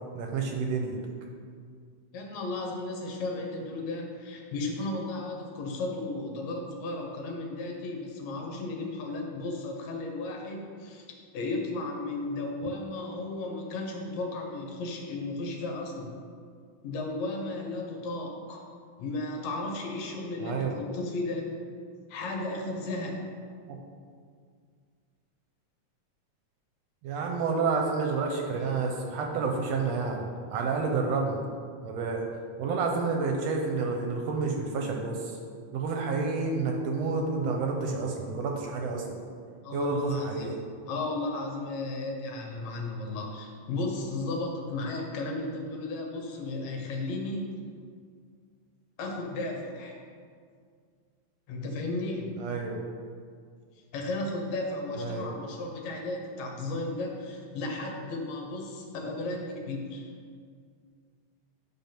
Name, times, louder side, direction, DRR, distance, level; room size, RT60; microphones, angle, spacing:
voice 1, 0.1-1.0 20.4-20.8 23.7-23.8 27.0-31.4 31.8-32.2 32.6-35.4 35.7-39.2 39.7-40.6 52.4-52.8 55.0-55.3, right 4 dB, 75° right, 1 dB, 1.7 m, -29 dB
voice 2, 2.1-11.1 11.3-16.2 16.8-18.6 19.0-21.5 22.1-23.2 39.6-40.5 40.9-47.5 49.0-50.0 51.5-52.5 53.9-60.1, left 2 dB, 75° left, 1 dB, 2.3 m, -34 dB
10.0 x 3.5 x 5.9 m, 2.1 s
omnidirectional pair, 3.3 m